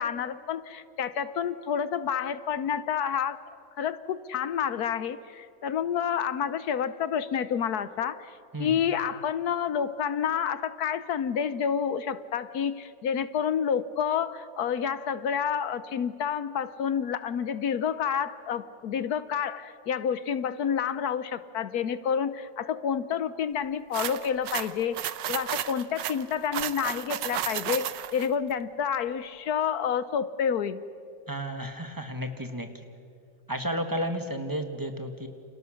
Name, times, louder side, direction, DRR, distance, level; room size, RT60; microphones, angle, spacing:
voice 1, 0.0-3.4 3.8-8.3 8.6-30.8, left 8 dB, 65° left, 14 dB, 1.2 m, -29 dB
sound 1, 23.9-28.3, right 11 dB, 85° right, 1.5 m, -33 dB
voice 2, 31.3-32.7 33.5-35.3, equal, 10° right, 6 dB, 1.6 m, -32 dB
29.5 x 27.5 x 6.5 m, 2.4 s
omnidirectional pair, 1.8 m